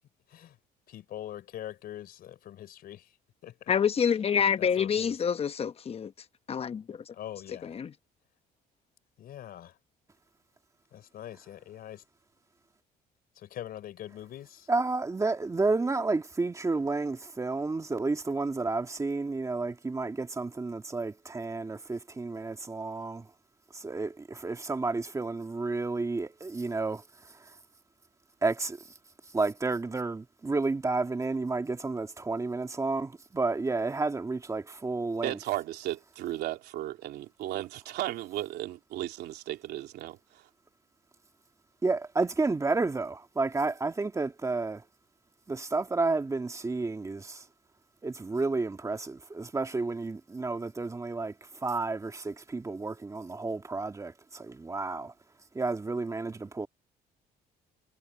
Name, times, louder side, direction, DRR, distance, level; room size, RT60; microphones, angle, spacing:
voice 1, 0.9-3.2 3.4-3.7 4.6-5.2 7.1-7.8 9.2-9.8 10.9-12.0 13.4-14.7, left 11 dB, 65° left, 4.2 m, -43 dB
voice 2, 3.7-6.1 6.5-7.0 7.6-7.9, left 7 dB, 35° left, 0.9 m, -27 dB
voice 3, 14.7-23.3 23.7-27.6 28.4-28.9 29.3-35.4 41.8-44.8 45.5-47.5 48.0-55.1 55.5-56.7, right 3 dB, 20° right, 2.1 m, -31 dB
voice 4, 35.2-40.2, right 14 dB, 75° right, 3.3 m, -35 dB
cardioid pair, 110°, 17 cm